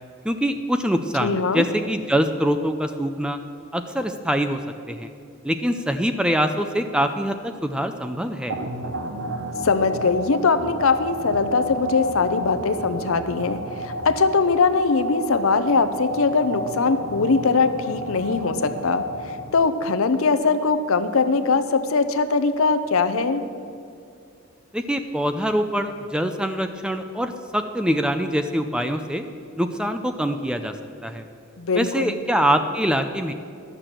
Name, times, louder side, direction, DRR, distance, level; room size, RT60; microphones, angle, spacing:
voice 1, 0.2-3.4 3.7-4.6 4.9-5.1 5.4-8.6 24.7-29.2 29.6-30.7 31.0-31.2 31.7-33.3, equal, 5° right, 7 dB, 0.4 m, -24 dB
voice 2, 1.2-1.7 9.6-23.4 31.6-32.2, left 4 dB, 65° left, 10 dB, 0.6 m, -21 dB
sound 1, 8.5-19.9, right 1 dB, 50° right, 0.8 m, -31 dB
11.5 x 6.8 x 7.4 m, 2.4 s
head